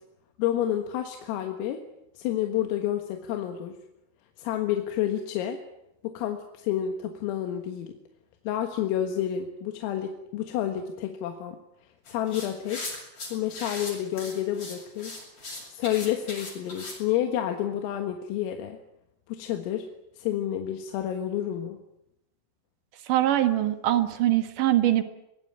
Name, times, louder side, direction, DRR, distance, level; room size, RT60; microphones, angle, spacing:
voice 1, 0.4-1.8 2.2-3.8 4.4-5.6 6.0-8.0 8.5-11.6 12.1-13.0 13.3-15.2 15.7-18.8 19.3-19.9 20.2-21.8, left 11 dB, 85° left, 5 dB, 4.2 m, -29 dB
sound 1, 12.1-17.0, left 2 dB, 30° left, 8.3 m, -39 dB
voice 2, 23.1-25.0, right 13 dB, 75° right, 9 dB, 1.9 m, -23 dB
24.0 x 20.5 x 8.9 m, 0.84 s
omnidirectional pair, 5.9 m